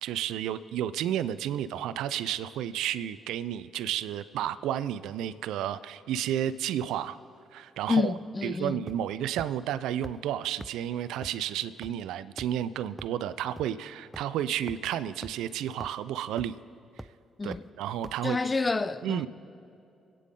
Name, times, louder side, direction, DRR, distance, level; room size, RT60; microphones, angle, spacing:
voice 1, 0.0-7.2 7.5-8.1 8.4-16.5 17.4-18.4 19.0-19.3, right 11 dB, 75° right, 0.5 m, -32 dB
voice 2, 7.9-8.8 17.4-17.7 18.2-19.3, left 4 dB, 30° left, 0.6 m, -28 dB
sound 1, 8.9-9.1 9.4-9.5 10.0-10.1 10.6-10.7 11.2-11.3 11.8-11.9 12.4-12.6 13.0-13.1 13.6-13.7 14.1-14.2 14.7-14.8 15.2-15.3 15.8-15.9 16.4-16.6 17.0-17.1 17.5-17.6 18.0-18.1, right 1 dB, 15° right, 0.5 m, -41 dB
26.0 x 9.2 x 3.8 m
hypercardioid pair, 45°, 0 cm